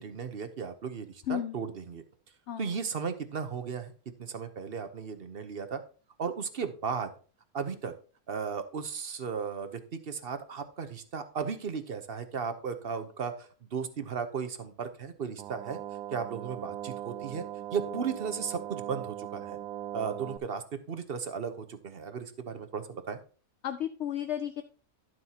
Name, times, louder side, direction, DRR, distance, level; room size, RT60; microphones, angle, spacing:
voice 1, 0.0-2.0 2.6-3.9 4.2-5.8 6.2-7.1 7.5-7.9 8.3-15.8 16.1-17.4 17.7-19.6 19.9-23.2, right 6 dB, 45° right, 9 dB, 0.9 m, -35 dB
sound 1, 15.4-20.4, right 11 dB, 80° right, 1.1 m, -39 dB
voice 2, 23.6-24.6, left 10 dB, 60° left, 10 dB, 0.7 m, -33 dB
11.5 x 7.7 x 2.9 m, 0.40 s
omnidirectional pair, 1.6 m